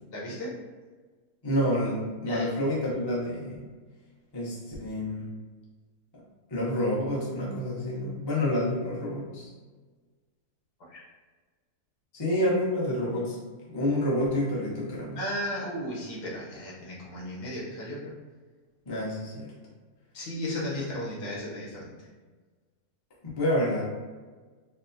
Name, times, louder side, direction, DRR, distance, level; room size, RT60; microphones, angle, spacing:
voice 1, 0.1-0.6 2.3-2.5 10.9-11.0 15.1-18.1 20.1-21.9, left 1 dB, 80° left, -5 dB, 1.6 m, -35 dB
voice 2, 1.4-3.6 4.3-5.3 6.1-6.2 6.5-9.5 12.1-13.4 13.7-15.2 18.9-19.5 23.4-23.8, left 1 dB, 25° left, -6 dB, 0.5 m, -28 dB
4.3 x 2.1 x 2.6 m, 1.4 s
omnidirectional pair, 1.7 m